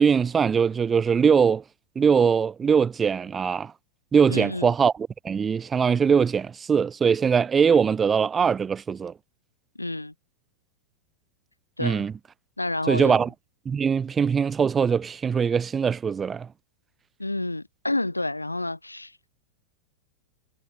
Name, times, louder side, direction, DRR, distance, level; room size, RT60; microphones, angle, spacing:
voice 1, 0.0-1.6 2.0-3.7 4.1-4.9 5.2-9.1 11.8-12.1 12.9-13.3 13.7-16.5, right 6 dB, 20° right, 0.3 m, -21 dB
voice 2, 4.3-4.7 9.7-10.1 11.8-12.1 12.6-13.2 17.2-19.3, left 2 dB, 85° left, 1.4 m, -29 dB
figure-of-eight pair, 90°, 0 cm